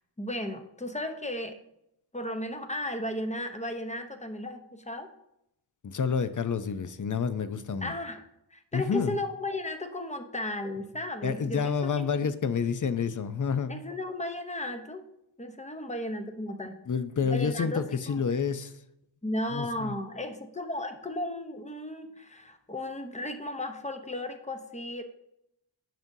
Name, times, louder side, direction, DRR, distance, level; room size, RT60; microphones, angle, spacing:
voice 1, 0.2-1.6 2.1-5.1 7.8-11.7 13.7-15.0 15.4-16.8 17.2-18.2 19.2-25.0, left 1 dB, 15° left, 7 dB, 0.8 m, -35 dB
voice 2, 5.8-7.9 8.7-9.2 11.2-13.8 16.9-18.7 19.5-20.0, left 6 dB, 45° left, 12 dB, 0.6 m, -29 dB
9.0 x 6.1 x 2.7 m, 0.80 s
wide cardioid pair, 55°, 45 cm